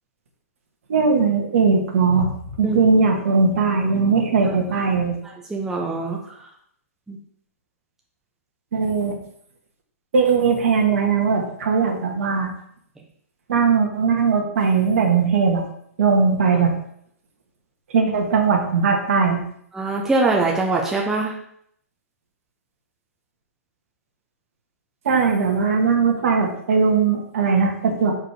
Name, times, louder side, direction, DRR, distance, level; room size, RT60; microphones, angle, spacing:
voice 1, 0.9-2.3 2.6-5.1 8.7-9.2 10.1-12.5 13.5-15.6 16.0-16.7 17.9-19.4 25.1-28.1, right 5 dB, 55° right, 1 dB, 1.8 m, -19 dB
voice 2, 5.5-6.2 7.1-7.2 19.7-21.3, right 3 dB, 5° right, -2 dB, 1.0 m, -22 dB
5.9 x 4.7 x 4.9 m, 0.67 s
figure-of-eight pair, 120°, 8 cm